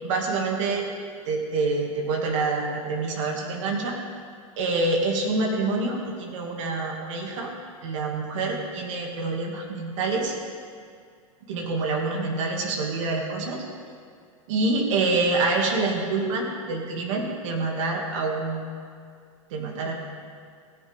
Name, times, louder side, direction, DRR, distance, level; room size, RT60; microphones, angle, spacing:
voice 1, 0.0-0.9 1.3-4.0 4.6-7.5 7.8-10.4 11.5-13.6 14.5-18.7 19.5-19.9, right 3 dB, 60° right, 0 dB, 2.5 m, -26 dB
16.5 x 9.9 x 3.7 m, 2.1 s
hypercardioid pair, 135°, 18 cm